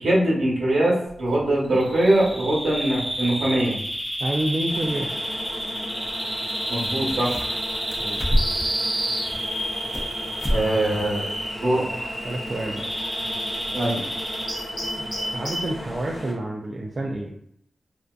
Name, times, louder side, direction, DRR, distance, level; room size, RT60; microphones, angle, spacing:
voice 1, 0.0-3.7 6.7-7.4 10.5-11.3 11.6-11.8 13.7-14.0, right 1 dB, 85° right, -5 dB, 1.0 m, -22 dB
Bird vocalization bird call bird song, 1.8-15.8, equal, 5° right, 0.8 m, -30 dB
voice 2, 4.2-5.1 8.0-8.2 11.8-12.0 12.2-12.8 15.0-15.1 15.3-17.3, right 1 dB, 45° right, -2 dB, 0.3 m, -28 dB
sound 1, 4.7-16.3, left 1 dB, 80° left, 0.8 m, -37 dB
sound 2, 6.5-6.6 6.8-7.6 7.9-8.7 9.2-10.1 10.4-10.6 11.0-11.1 11.6-11.7, equal, 25° left, 0.6 m, -26 dB
2.5 x 2.2 x 2.3 m, 0.71 s
wide cardioid pair, 80°, 0 cm